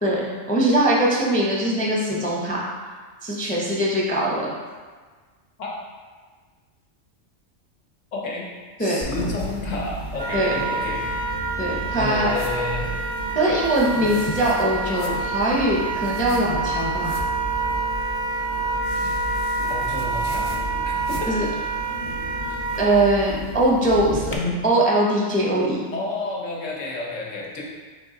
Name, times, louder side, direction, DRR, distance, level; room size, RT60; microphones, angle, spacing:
voice 1, 0.0-2.7 3.2-4.5 8.8-9.0 10.3-10.5 11.6-12.3 13.3-17.2 21.3-21.5 22.8-24.4 24.6-25.9, right 1 dB, 10° left, -4 dB, 0.4 m, -21 dB
voice 2, 8.1-11.0 11.9-12.9 19.7-20.5 20.8-21.5 24.3-24.6 25.9-27.6, left 2 dB, 90° left, -2 dB, 1.2 m, -30 dB
sound 1, 9.0-24.3, equal, 55° left, 0.6 m, -33 dB
Wind instrument woodwind instrument, 10.2-22.9, right 3 dB, 55° right, 0.4 m, -28 dB
4.4 x 3.1 x 3.7 m, 1.5 s
omnidirectional pair, 1.2 m